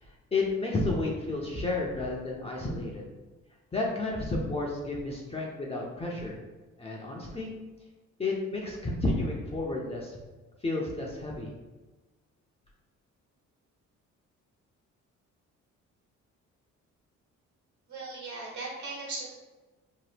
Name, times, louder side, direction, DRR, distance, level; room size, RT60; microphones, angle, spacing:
voice 1, 0.0-3.1 3.7-6.4 6.8-7.5 8.2-10.2 10.6-11.5, left 2 dB, 20° left, -3 dB, 0.5 m, -31 dB
voice 2, 17.9-19.3, right 3 dB, 70° right, -4 dB, 1.4 m, -38 dB
2.8 x 2.2 x 3.3 m, 1.2 s
cardioid pair, 90°, 30 cm